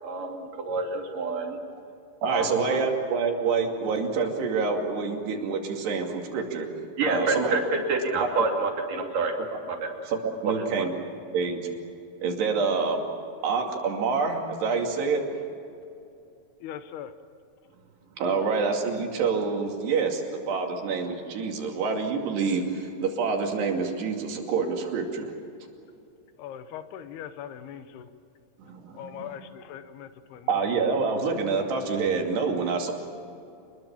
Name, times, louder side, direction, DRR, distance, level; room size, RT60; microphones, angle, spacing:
voice 1, 0.0-1.6 2.3-2.8 7.0-7.6 7.9-9.3 9.7-9.9 10.4-10.8, right 3 dB, 55° right, 1 dB, 4.2 m, -28 dB
voice 2, 2.2-6.7 7.0-7.6 10.1-10.9 11.3-11.6 12.2-13.0 13.4-15.4 18.2-20.2 20.5-25.3 28.7-29.4 30.5-32.9, right 4 dB, 90° right, 2 dB, 4.7 m, -27 dB
voice 3, 16.6-17.1 26.4-28.0 29.0-30.1, left 9 dB, 80° left, 10 dB, 3.0 m, -40 dB
27.5 x 21.0 x 7.3 m, 2.6 s
omnidirectional pair, 4.6 m